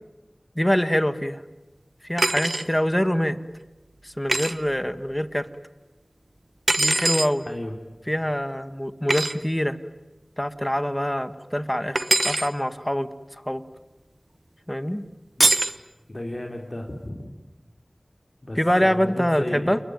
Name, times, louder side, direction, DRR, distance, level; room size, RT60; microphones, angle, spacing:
voice 1, 0.5-1.4 2.0-3.4 4.0-5.5 6.8-7.5 8.1-9.8 10.4-13.1 13.5-13.6 14.7-15.0 18.6-19.8, equal, 10° left, 12 dB, 1.6 m, -24 dB
sound 1, 2.2-2.7 4.3-4.5 6.7-7.3 9.1-9.3 11.9-12.5 15.4-15.8, right 2 dB, 70° right, 1.0 m, -22 dB
voice 2, 7.4-7.8 15.4-15.5 16.1-17.3 18.4-19.8, left 1 dB, 50° left, 2 dB, 3.4 m, -34 dB
29.5 x 21.5 x 9.4 m, 1.1 s
wide cardioid pair, 40°, 0 cm